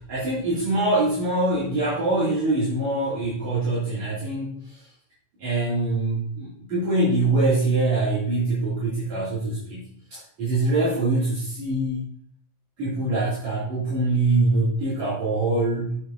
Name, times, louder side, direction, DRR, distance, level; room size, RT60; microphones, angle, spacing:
voice 1, 0.0-4.8 5.4-12.0 12.8-16.0, right 2 dB, 55° right, -10 dB, 4.0 m, -24 dB
8.6 x 7.8 x 2.8 m, 0.63 s
omnidirectional pair, 3.7 m